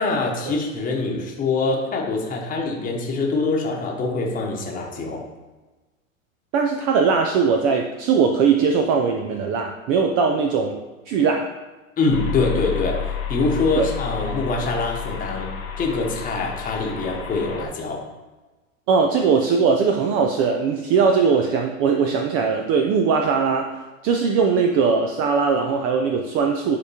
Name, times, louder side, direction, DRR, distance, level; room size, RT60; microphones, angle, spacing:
voice 1, 0.0-5.2 12.0-13.0 13.3-15.5 15.8-18.0, left 3 dB, 20° left, -1 dB, 1.1 m, -24 dB
voice 2, 6.5-10.8 11.1-11.5 13.8-13.9 18.9-23.7 24.0-26.8, right 5 dB, 35° right, 3 dB, 0.5 m, -20 dB
sound 1, 12.1-17.7, left 8 dB, 90° left, 0.9 m, -30 dB
10.0 x 3.5 x 2.8 m, 1.2 s
figure-of-eight pair, 90°, 41 cm